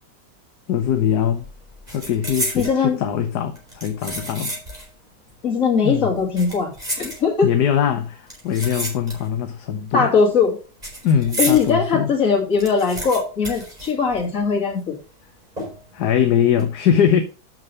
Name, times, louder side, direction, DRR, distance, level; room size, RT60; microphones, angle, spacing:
voice 1, 0.7-1.5 1.9-4.5 5.8-6.1 7.4-10.1 11.0-12.1 15.6-17.2, left 8 dB, 70° left, 1.4 m, -21 dB
sound 1, 0.8-1.1 1.4-2.8 3.5-4.9 5.2-5.3 6.2-7.6 8.3-9.5 9.7-11.7 12.1-12.2 12.4-14.5 14.8-14.9 15.6-16.0 16.4-16.6, right 1 dB, 20° right, 4.3 m, -31 dB
voice 2, 2.5-3.0 5.4-7.5 9.9-10.6 11.4-15.0, left 5 dB, 50° left, 2.9 m, -20 dB
6.6 x 6.1 x 6.7 m
omnidirectional pair, 1.9 m